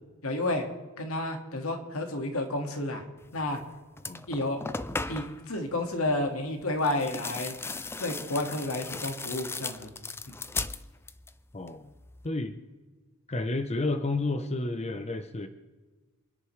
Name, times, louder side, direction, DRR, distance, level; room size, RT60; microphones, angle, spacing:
voice 1, 0.2-0.6 1.0-3.0 3.3-3.6 4.3-4.6 5.1-7.6 8.0-9.9, left 2 dB, 85° left, 4 dB, 2.0 m, -31 dB
sound 1, 3.5-3.7 4.0-5.5 6.8-11.4 11.7-12.3, left 3 dB, 10° left, 0.4 m, -37 dB
voice 2, 4.1-4.5 11.5-11.9 12.2-12.6 13.3-15.5, left 2 dB, 30° left, 8 dB, 0.8 m, -31 dB
28.0 x 10.5 x 3.3 m, 1.3 s
head